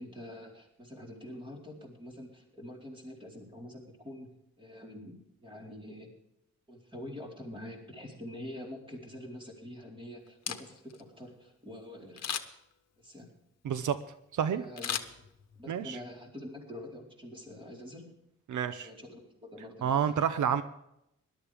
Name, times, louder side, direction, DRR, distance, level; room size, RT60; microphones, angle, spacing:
voice 1, 0.0-4.3 4.6-6.1 6.7-12.3 13.0-13.3 14.6-15.0 15.6-18.1 18.8-20.3, left 1 dB, 15° right, -1 dB, 4.2 m, -46 dB
Camera, 10.3-11.0 12.2-12.7 14.8-15.7 16.1-16.2, left 8 dB, 60° left, 1.2 m, -37 dB
voice 2, 13.6-14.0 14.3-14.6 15.7-16.0 18.5-18.9 19.8-20.6, right 8 dB, 80° right, 11 dB, 0.8 m, -29 dB
20.5 x 12.0 x 3.5 m, 0.80 s
wide cardioid pair, 140°, 30 cm